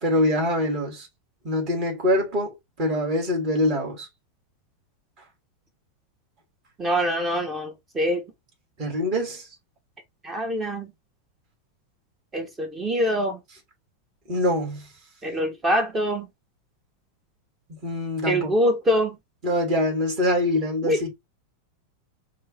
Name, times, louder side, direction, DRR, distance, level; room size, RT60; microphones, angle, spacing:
voice 1, 0.0-1.1 1.4-4.1 8.8-9.4 14.3-14.8 17.8-18.5 19.4-21.1, left 1 dB, 40° right, 3.0 m, -24 dB
voice 2, 6.8-8.2 10.2-10.9 12.3-13.4 15.2-16.3 18.3-19.2 20.8-21.1, equal, 20° right, 1.2 m, -24 dB
5.3 x 2.8 x 3.4 m
figure-of-eight pair, 90°, 0 cm